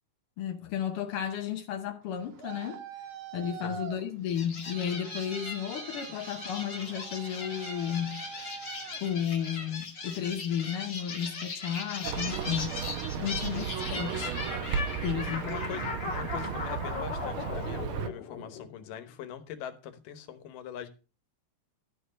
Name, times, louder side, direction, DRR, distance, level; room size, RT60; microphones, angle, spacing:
voice 1, 0.4-2.8 3.3-8.2 9.0-12.8 13.1-14.3 15.0-15.5, left 9 dB, 75° left, 1.3 m, -33 dB
Traffic noise roadway noise, 2.0-9.7, right 7 dB, 60° right, 1.9 m, -45 dB
sound 1, 4.3-18.9, left 4 dB, 40° left, 2.3 m, -39 dB
Livestock farm animals working animals, 12.0-18.1, right 7 dB, 85° right, 1.1 m, -34 dB
voice 2, 13.2-13.6 14.9-15.0 15.4-15.8 16.1-20.9, left 9 dB, 90° left, 2.7 m, -42 dB
12.5 x 4.5 x 6.2 m
omnidirectional pair, 3.6 m